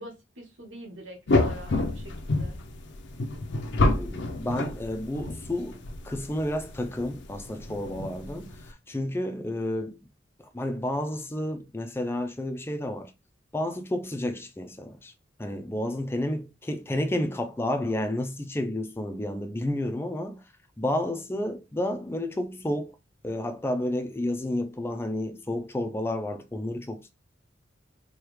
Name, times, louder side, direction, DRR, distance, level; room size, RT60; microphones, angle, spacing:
voice 1, 0.0-2.6, right 1 dB, 85° right, 1.3 m, -45 dB
sound 1, 1.3-8.7, left 2 dB, 65° left, 0.6 m, -29 dB
voice 2, 3.9-10.0 10.5-13.1 13.5-15.1 15.4-20.4 20.8-22.9 23.2-27.1, left 1 dB, 10° left, 0.4 m, -31 dB
4.7 x 2.3 x 3.1 m
head